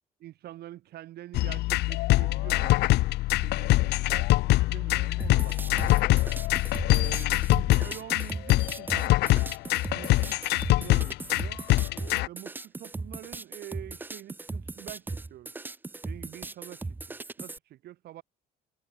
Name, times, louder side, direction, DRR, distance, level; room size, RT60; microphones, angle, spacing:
voice 1, 0.2-3.0 3.4-6.1 6.9-9.2 9.9-11.6 12.3-15.5 16.0-18.2, right 14 dB, 70° right, 6.4 m, -46 dB
sound 1, 1.3-12.3, left 19 dB, 75° left, 0.5 m, -24 dB
sound 2, 5.2-17.6, right 3 dB, 10° right, 0.4 m, -38 dB
cardioid pair, 110°, 17 cm